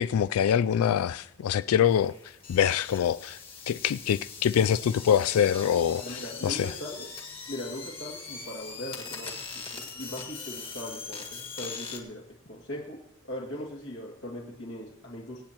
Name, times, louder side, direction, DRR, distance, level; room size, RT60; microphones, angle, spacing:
voice 1, 0.0-3.4 3.7-6.7, left 9 dB, 90° left, 0.3 m, -25 dB
sound 1, 1.8-12.0, left 5 dB, 25° left, 1.7 m, -41 dB
voice 2, 5.9-7.1 7.5-13.0 13.3-15.4, left 1 dB, 60° left, 2.2 m, -39 dB
24.0 x 8.7 x 3.0 m
head